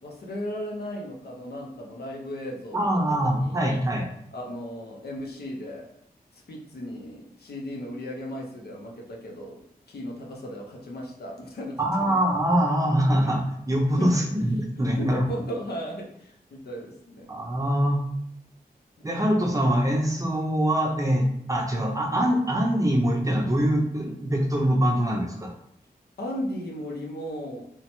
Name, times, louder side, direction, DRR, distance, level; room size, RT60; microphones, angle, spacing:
voice 1, 0.0-2.9 3.3-3.7 4.3-5.9 6.3-9.6 9.9-11.8 12.1-12.2 14.0-14.3 14.8-17.3 26.2-27.6, equal, 90° left, -1 dB, 0.6 m, -36 dB
voice 2, 2.7-4.1 11.8-15.3 17.3-18.0 19.0-25.5, equal, 20° right, 0 dB, 0.5 m, -23 dB
3.0 x 2.1 x 2.9 m, 0.72 s
wide cardioid pair, 105°, 16 cm